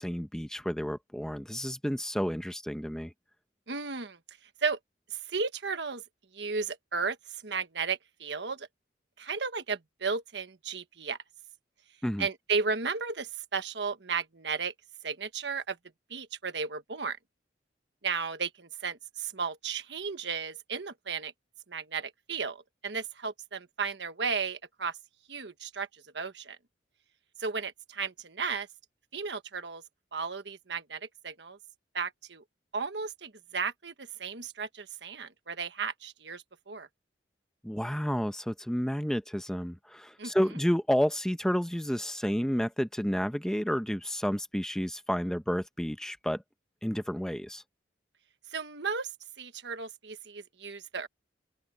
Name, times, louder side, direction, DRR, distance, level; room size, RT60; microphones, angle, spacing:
voice 1, 0.0-3.1 12.0-12.3 37.6-46.4 46.8-47.6, equal, 5° left, 0.9 m, -30 dB
voice 2, 3.7-4.8 5.1-6.0 6.3-8.7 9.2-11.2 12.2-14.7 15.0-15.8 16.1-17.2 18.0-21.3 21.7-25.0 25.3-26.6 27.4-28.7 29.1-29.8 30.1-31.6 31.9-32.4 32.7-36.9 40.2-40.3 48.5-49.1 49.4-51.1, right 5 dB, 70° right, 1.3 m, -34 dB
open air
head